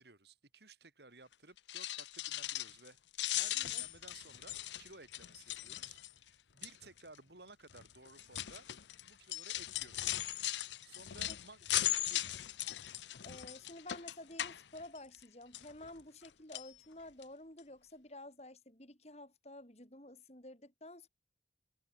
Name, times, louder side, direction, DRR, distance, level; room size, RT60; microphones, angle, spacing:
voice 1, 0.0-3.0 3.3-8.7 9.1-10.2 10.8-11.6 12.0-12.3, right 3 dB, 70° right, 4.4 m, -57 dB
sound 1, 1.6-2.9 3.1-6.3 6.6-7.0 7.7-15.2 15.5-16.3 16.5-16.7 17.2-17.3 17.6-17.7, left 14 dB, 85° left, 0.7 m, -39 dB
voice 2, 3.5-3.8 11.3-11.4 13.2-21.1, left 1 dB, 35° left, 4.3 m, -51 dB
head